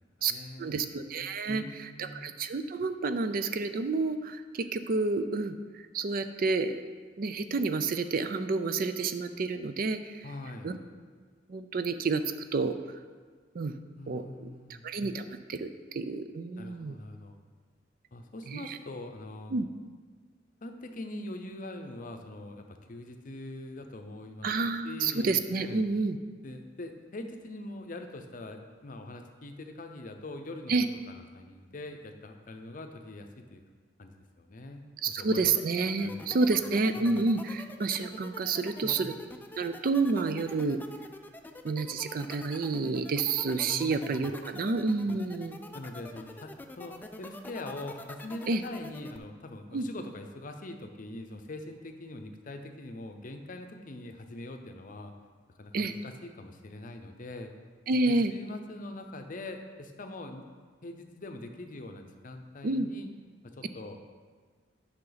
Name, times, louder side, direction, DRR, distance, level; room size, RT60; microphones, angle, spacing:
voice 1, 0.0-1.2 1.5-2.2 10.2-10.8 14.0-14.8 16.6-17.4 18.1-19.6 20.6-24.5 24.8-25.9 26.4-33.6 34.0-35.5 36.0-36.6 36.9-37.2 38.8-39.1 43.7-44.3 45.1-45.2 45.7-55.1 55.6-57.5 57.9-60.5 60.8-63.1 63.4-64.0, left 2 dB, 45° left, 6 dB, 0.7 m, -43 dB
voice 2, 0.6-6.8 7.2-10.2 10.6-10.8 11.5-12.8 13.5-13.7 14.1-14.5 14.8-17.0 18.5-18.8 19.5-19.7 24.4-26.2 30.7-30.9 35.0-39.1 39.6-40.8 41.6-45.6 48.5-48.6 49.7-49.9 55.7-55.9 57.9-58.3 62.6-62.9, right 3 dB, 50° right, 9 dB, 0.4 m, -29 dB
sound 1, 35.4-49.2, left 2 dB, 10° left, 0.4 m, -45 dB
9.5 x 5.8 x 4.0 m, 1.5 s
head